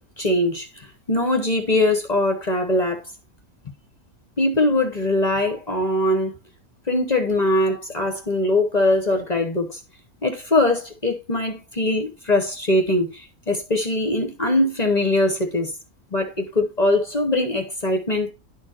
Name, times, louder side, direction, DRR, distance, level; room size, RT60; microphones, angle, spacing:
voice 1, 0.2-3.0 4.4-6.3 6.9-9.8 10.2-15.7 16.1-18.3, left 1 dB, 30° left, 1.0 m, -22 dB
11.5 x 4.5 x 2.9 m
omnidirectional pair, 1.5 m